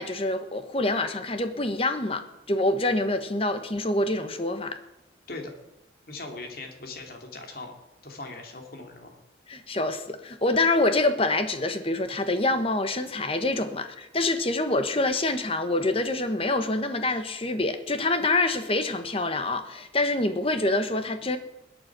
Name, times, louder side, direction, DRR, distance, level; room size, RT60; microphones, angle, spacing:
voice 1, 0.0-4.8 9.5-21.4, left 2 dB, 30° left, 1.2 m, -26 dB
voice 2, 6.1-7.8 8.0-9.2, left 3 dB, 50° left, 2.6 m, -40 dB
21.0 x 8.5 x 6.1 m
head